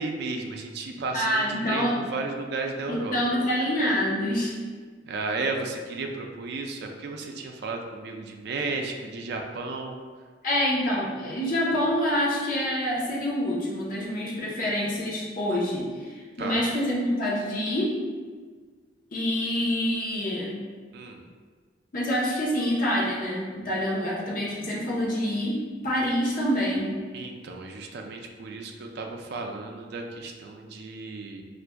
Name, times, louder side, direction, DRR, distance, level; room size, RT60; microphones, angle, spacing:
voice 1, 0.0-3.2 5.0-10.0 16.4-16.6 20.9-21.2 27.1-31.4, right 3 dB, 60° right, 2 dB, 0.4 m, -33 dB
voice 2, 1.1-2.0 2.9-4.5 10.4-17.9 19.1-20.5 21.9-26.9, equal, 50° left, -5 dB, 0.8 m, -26 dB
4.5 x 2.4 x 2.2 m, 1.5 s
head